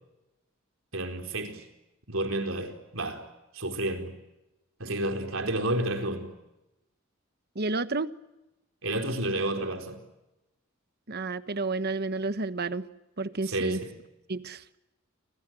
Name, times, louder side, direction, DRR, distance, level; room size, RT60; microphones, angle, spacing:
voice 1, 0.9-1.6 2.1-3.3 3.5-4.1 4.8-6.3 8.8-10.0 13.5-14.0, right 1 dB, 70° right, 4.5 m, -30 dB
voice 2, 7.5-8.1 11.1-12.9 13.2-13.8 14.3-14.6, right 3 dB, 50° right, 1.3 m, -30 dB
29.5 x 26.0 x 7.7 m
head